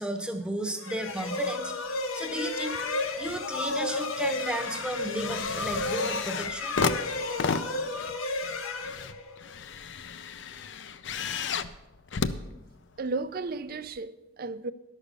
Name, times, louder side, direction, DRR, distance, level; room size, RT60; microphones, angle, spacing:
voice 1, 0.0-1.7 2.1-6.8, right 1 dB, 5° right, 0.8 m, -34 dB
sound 1, 0.8-9.6, left 2 dB, 85° left, 0.9 m, -32 dB
sound 2, 2.7-3.4 3.8-13.2 13.9-14.0, left 5 dB, 60° left, 0.5 m, -34 dB
voice 2, 13.0-14.7, right 3 dB, 45° right, 0.4 m, -34 dB
11.5 x 6.4 x 6.7 m
head